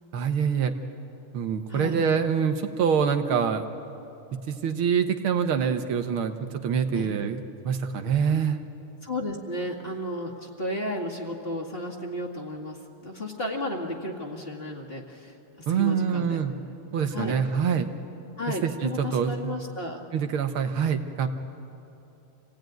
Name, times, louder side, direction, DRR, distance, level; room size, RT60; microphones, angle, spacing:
voice 1, 0.1-0.7 1.3-3.6 4.3-8.6 15.7-16.5 16.9-17.9 18.6-19.6 20.1-21.3, right 7 dB, 80° right, 7 dB, 1.9 m, -25 dB
voice 2, 9.0-16.4 17.1-17.4 18.4-20.0, left 1 dB, 30° left, 0 dB, 2.0 m, -33 dB
26.0 x 17.0 x 9.3 m, 2.9 s
omnidirectional pair, 2.4 m